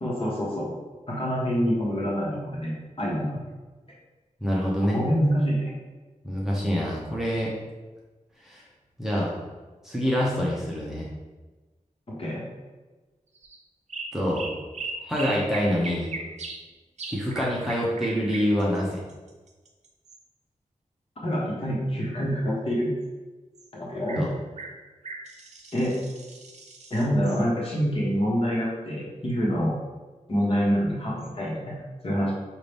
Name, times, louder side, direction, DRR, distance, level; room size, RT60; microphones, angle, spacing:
voice 1, 0.0-0.7 1.1-3.4 4.8-5.7 12.2-12.4 21.2-22.9 23.7-24.2 25.7-25.9 26.9-29.7 30.3-32.3, equal, 45° left, -5 dB, 1.4 m, -26 dB
voice 2, 4.4-5.0 6.2-7.5 8.4-8.7 9.0-9.3 9.8-11.1 14.1-14.4 15.0-16.1 17.1-19.0 24.2-24.3, equal, 5° right, -5 dB, 0.8 m, -26 dB
sound 1, 13.3-13.6 13.9-16.6 17.0-20.2 23.5-23.7 24.1-24.3 24.6-27.4 30.4-30.5 31.2-31.3, right 3 dB, 60° right, 0.5 m, -38 dB
5.6 x 2.6 x 3.4 m, 1.2 s
wide cardioid pair, 120°, 13 cm